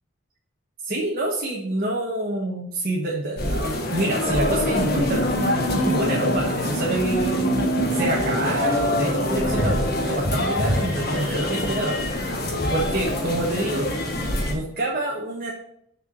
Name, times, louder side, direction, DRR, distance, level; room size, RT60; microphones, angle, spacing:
voice 1, 0.8-7.5 7.9-12.0 12.7-13.9 14.5-15.5, right 2 dB, 45° right, -2 dB, 1.2 m, -27 dB
sound 1, 3.4-14.5, left 1 dB, 50° left, 1.5 m, -24 dB
6.6 x 4.8 x 6.5 m, 0.71 s
head